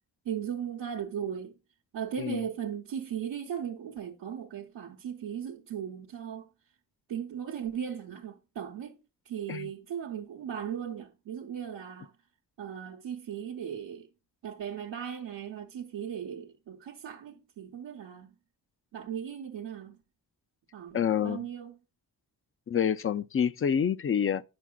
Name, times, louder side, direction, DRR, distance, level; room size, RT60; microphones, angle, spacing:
voice 1, 0.2-1.6 1.9-6.5 7.1-9.0 9.2-12.1 12.6-14.1 14.4-18.3 18.9-20.0 20.7-21.8, right 8 dB, 85° right, 0.9 m, -37 dB
voice 2, 20.9-21.5 22.7-24.4, left 8 dB, 35° left, 0.4 m, -27 dB
9.2 x 6.0 x 2.2 m
cardioid pair, 55°, 41 cm